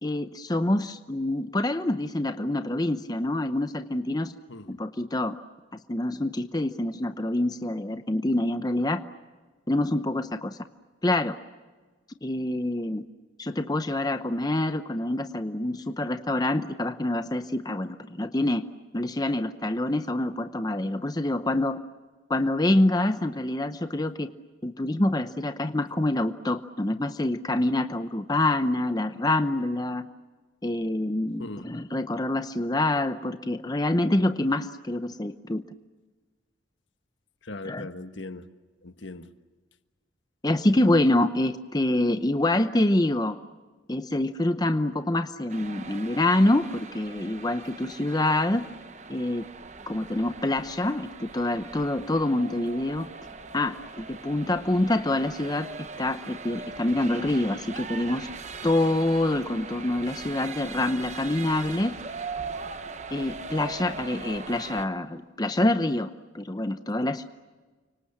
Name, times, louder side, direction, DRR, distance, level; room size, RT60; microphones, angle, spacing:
voice 1, 0.0-4.3 4.7-5.4 5.9-9.0 9.7-10.6 11.0-11.4 12.2-13.0 13.4-18.7 18.9-21.8 22.3-24.3 24.6-30.1 30.6-35.6 37.6-37.9 40.4-43.4 43.9-48.7 49.1-49.4 49.9-53.1 53.5-55.7 56.0-58.3 58.6-61.9 63.1-67.2, left 1 dB, 20° left, 0.8 m, -26 dB
voice 2, 37.4-38.5 38.8-39.3, left 2 dB, 75° left, 1.4 m, -39 dB
sound 1, 45.5-64.9, right 4 dB, 35° right, 1.1 m, -40 dB
30.0 x 25.5 x 7.2 m
head